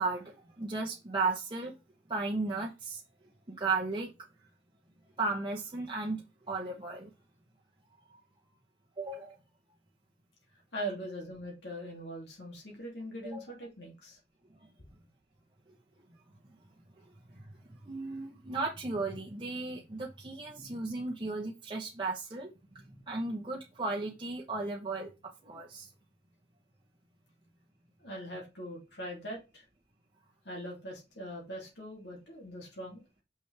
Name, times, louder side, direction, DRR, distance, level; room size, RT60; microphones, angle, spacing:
voice 1, 0.0-1.7 2.1-3.0 3.5-4.1 5.2-6.2 6.5-7.1 9.0-9.3 13.2-13.4 17.9-22.5 22.9-25.1 25.4-25.9, right 3 dB, 25° right, 1.0 m, -35 dB
voice 2, 10.7-14.2 28.0-29.6 30.4-33.0, right 1 dB, 75° left, 2.8 m, -41 dB
6.2 x 5.9 x 3.4 m
head